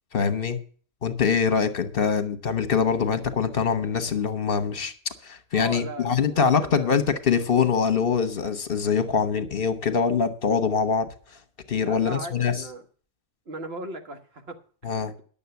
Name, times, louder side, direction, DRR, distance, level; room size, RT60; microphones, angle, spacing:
voice 1, 0.1-0.6 1.0-4.9 5.2-11.1 11.7-12.6 14.8-15.1, left 6 dB, 60° left, 1.3 m, -24 dB
voice 2, 5.5-7.0 11.8-12.8 13.5-15.2, right 2 dB, 70° right, 1.7 m, -38 dB
11.0 x 7.1 x 7.0 m
omnidirectional pair, 1.1 m